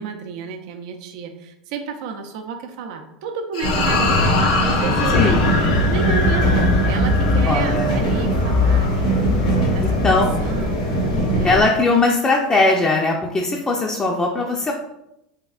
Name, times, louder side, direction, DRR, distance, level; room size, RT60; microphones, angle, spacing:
voice 1, 0.0-5.5 5.9-9.2 9.7-10.1 10.4-11.6, right 6 dB, 70° right, 5 dB, 0.5 m, -31 dB
sound 1, 3.5-10.1, left 4 dB, 70° left, 0.8 m, -26 dB
sound 2, 3.6-11.6, left 1 dB, 90° left, 1.2 m, -19 dB
voice 2, 5.1-5.4 7.5-7.9 10.0-10.3 11.4-14.7, left 3 dB, 20° left, -2 dB, 0.5 m, -19 dB
3.5 x 3.4 x 2.3 m, 0.84 s
hypercardioid pair, 100°, 4 cm